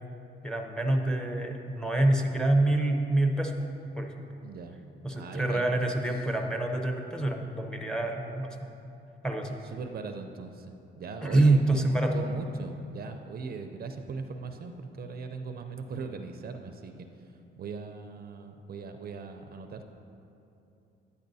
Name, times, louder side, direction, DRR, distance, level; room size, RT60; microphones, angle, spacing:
voice 1, 0.4-3.6 4.0-4.1 5.0-8.6 9.2-9.6 11.2-12.2, right 2 dB, 5° left, 3 dB, 0.7 m, -26 dB
voice 2, 4.4-4.8 5.1-5.7 9.4-19.9, right 4 dB, 50° right, 6 dB, 0.5 m, -40 dB
10.0 x 8.3 x 2.7 m, 2.8 s
cardioid pair, 90°, 20 cm